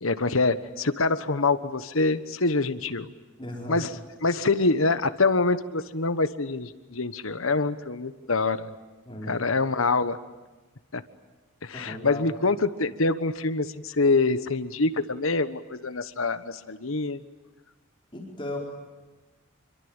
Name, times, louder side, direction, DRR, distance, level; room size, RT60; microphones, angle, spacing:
voice 1, 0.0-3.1 3.7-3.9 4.2-8.7 9.3-10.2 10.9-11.0 11.6-17.2, left 3 dB, 75° left, 12 dB, 1.3 m, -25 dB
voice 2, 3.4-3.9 9.0-9.4 11.7-12.2 18.1-18.6, left 1 dB, 25° left, -1 dB, 4.8 m, -36 dB
27.0 x 24.0 x 9.0 m, 1.2 s
head